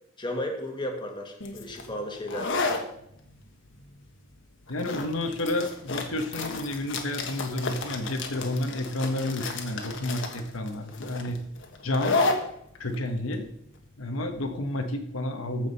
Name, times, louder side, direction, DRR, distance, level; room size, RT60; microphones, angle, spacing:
voice 1, 0.2-2.7, left 1 dB, 25° left, 2 dB, 1.7 m, -34 dB
sound 1, 1.4-14.8, left 3 dB, 65° left, 1.4 m, -33 dB
voice 2, 4.7-11.4 11.8-12.2 12.8-13.4 14.0-15.7, left 1 dB, 90° left, 5 dB, 1.3 m, -30 dB
14.5 x 5.0 x 5.5 m, 0.74 s
head